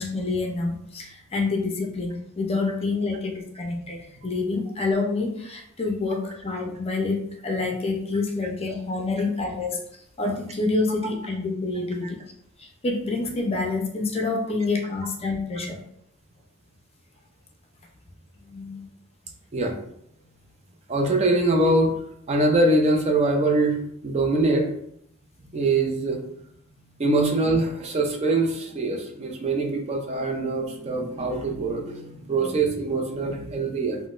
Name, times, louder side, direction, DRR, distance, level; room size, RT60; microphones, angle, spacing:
voice 1, 0.0-9.8 10.2-12.2 12.6-15.8 18.4-18.9, left 3 dB, 30° left, 1 dB, 0.5 m, -27 dB
voice 2, 20.9-21.9 22.3-24.7 25.5-26.2 27.0-34.0, right 2 dB, 30° right, 2 dB, 0.4 m, -23 dB
3.9 x 2.1 x 2.4 m, 0.69 s
head